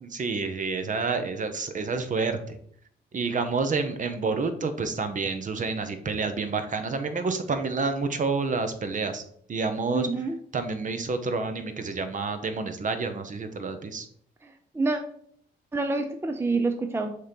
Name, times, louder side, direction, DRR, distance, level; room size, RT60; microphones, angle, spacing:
voice 1, 0.0-2.6 3.1-9.2 9.5-10.1 10.5-14.1, right 4 dB, 40° right, 8 dB, 0.9 m, -29 dB
voice 2, 9.9-10.4 14.4-15.0 15.7-17.2, right 3 dB, 10° right, 6 dB, 0.5 m, -27 dB
6.5 x 2.9 x 5.2 m, 0.64 s
cardioid pair, 90°, 20 cm